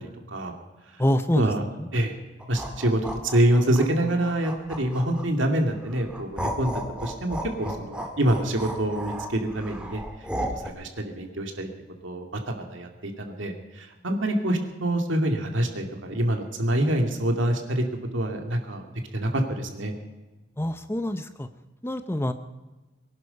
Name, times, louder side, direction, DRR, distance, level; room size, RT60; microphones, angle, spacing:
voice 1, 1.0-1.5 1.8-1.9 20.6-21.5 21.8-22.3, left 1 dB, 10° left, 10 dB, 0.6 m, -26 dB
sound 1, 2.4-5.4 5.9-10.7, equal, 5° right, 1.8 m, -34 dB
voice 2, 2.5-10.0 10.5-11.7 12.0-17.8 18.1-18.8 19.1-20.0, right 1 dB, 70° right, 3 dB, 2.3 m, -26 dB
23.0 x 11.5 x 5.4 m, 1.2 s
head